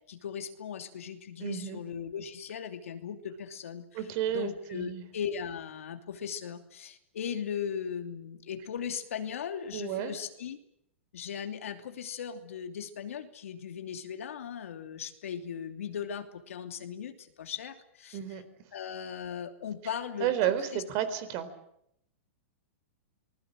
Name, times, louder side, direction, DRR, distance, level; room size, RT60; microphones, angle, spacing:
voice 1, 0.1-10.6 11.1-18.4 18.7-20.8, left 8 dB, 80° left, 7 dB, 2.9 m, -38 dB
voice 2, 1.4-1.8 3.9-5.0 9.7-10.1 18.1-18.4 20.2-21.5, right 10 dB, 45° right, 12 dB, 4.0 m, -31 dB
26.5 x 20.0 x 7.7 m, 0.75 s
hypercardioid pair, 140°, 7 cm